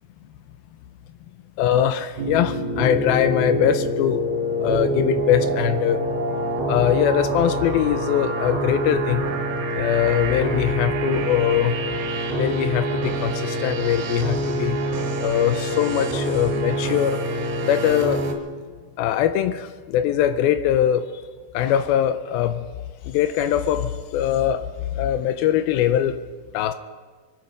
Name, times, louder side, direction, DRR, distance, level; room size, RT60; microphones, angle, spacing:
voice 1, 1.6-4.2 4.6-6.1 6.7-9.3 9.7-11.8 12.3-14.8 15.2-17.2 17.6-18.2 19.0-21.0 21.5-22.7 23.1-24.7 24.9-26.2 26.5-26.7, left 10 dB, 80° left, 10 dB, 2.2 m, -22 dB
sound 1, 2.2-18.3, right 1 dB, 85° right, 4.2 m, -26 dB
24.5 x 9.5 x 5.3 m, 1.5 s
omnidirectional pair, 4.8 m